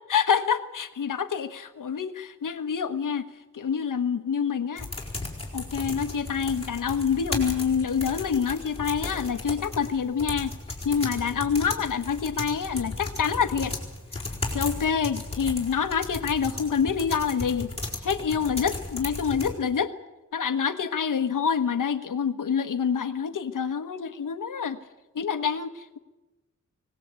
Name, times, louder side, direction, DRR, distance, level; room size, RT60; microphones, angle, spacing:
voice 1, 0.1-3.2 3.5-4.9 5.5-10.5 10.8-13.7 14.5-17.7 18.0-19.9 20.3-24.8 25.1-26.0, left 6 dB, 80° left, 9 dB, 1.4 m, -27 dB
sound 1, 4.8-19.5, left 2 dB, 20° left, 4.5 m, -35 dB
25.0 x 18.5 x 8.4 m, 1.1 s
wide cardioid pair, 170°, 31 cm